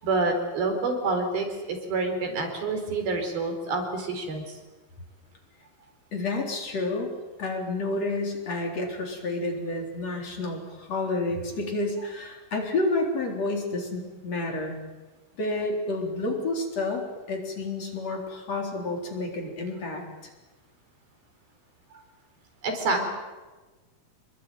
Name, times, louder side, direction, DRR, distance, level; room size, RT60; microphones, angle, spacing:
voice 1, 0.0-4.6 21.9-22.0 22.6-23.0, right 3 dB, 85° right, 4 dB, 6.3 m, -28 dB
voice 2, 6.1-7.1 7.4-14.8 15.4-20.0, left 2 dB, 45° left, 1 dB, 4.8 m, -30 dB
26.5 x 22.0 x 9.2 m, 1.2 s
omnidirectional pair, 4.2 m